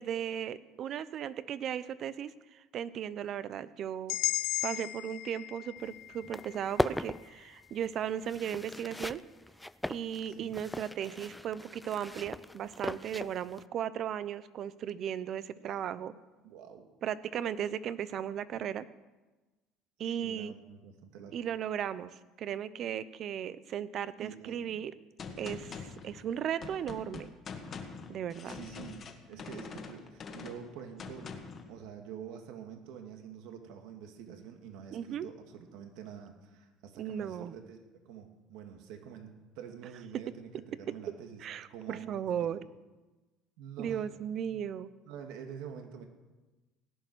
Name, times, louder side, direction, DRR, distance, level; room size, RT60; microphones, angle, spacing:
voice 1, 0.0-4.2 4.6-9.2 9.9-16.1 17.0-18.9 20.0-20.5 21.3-24.9 25.4-27.3 28.1-28.6 34.9-35.3 37.0-37.5 41.4-42.6 43.8-44.9, right 9 dB, 50° right, 16 dB, 0.8 m, -36 dB
sound 1, 4.1-8.1, left 17 dB, 70° left, 0.6 m, -37 dB
sound 2, 5.8-5.9 6.1-13.6, left 1 dB, 5° left, 0.4 m, -38 dB
voice 2, 16.4-16.9 20.0-21.4 24.2-24.8 28.5-31.4 31.7-41.4 41.7-42.3 42.6-42.7 43.6-44.0 44.4-44.6 45.1-46.1, right 8 dB, 75° right, 5 dB, 2.1 m, -47 dB
Gunshot gunfire, 25.2-31.7, left 5 dB, 40° left, 1.8 m, -44 dB
17.5 x 10.5 x 6.3 m, 1.2 s
cardioid pair, 115°, 0 cm